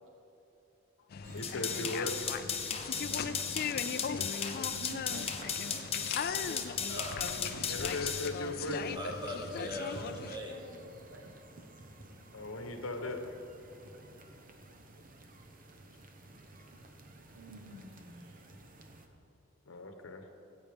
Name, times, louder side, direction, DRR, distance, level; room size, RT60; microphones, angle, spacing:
sound 1, 1.1-10.4, left 6 dB, 50° left, 0.4 m, -39 dB
sound 2, 1.2-19.1, right 2 dB, 45° right, 1.0 m, -53 dB
voice 1, 1.3-2.4 7.7-8.8 12.3-13.4 19.7-20.2, left 2 dB, 75° left, 5 dB, 1.0 m, -38 dB
sound 3, 1.4-8.3, left 7 dB, 30° left, 0.8 m, -36 dB
voice 2, 2.8-5.9 6.6-6.7 7.4-7.9 8.6-8.8 10.0-11.3 14.1-14.3 16.6-16.7 17.3-18.5, right 1 dB, 70° right, 1 dB, 1.0 m, -50 dB
voice 3, 6.8-7.5 8.9-10.6, equal, 20° right, -1 dB, 1.6 m, -40 dB
17.5 x 8.5 x 3.5 m, 2.8 s
head